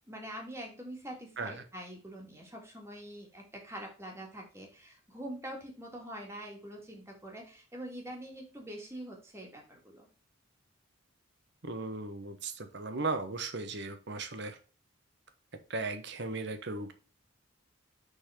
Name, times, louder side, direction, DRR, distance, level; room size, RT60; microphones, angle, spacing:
voice 1, 0.1-10.1, right 1 dB, 15° right, 0 dB, 1.9 m, -44 dB
voice 2, 11.6-14.6 15.7-16.9, right 3 dB, 55° right, 8 dB, 1.0 m, -36 dB
6.5 x 4.1 x 4.9 m, 0.36 s
head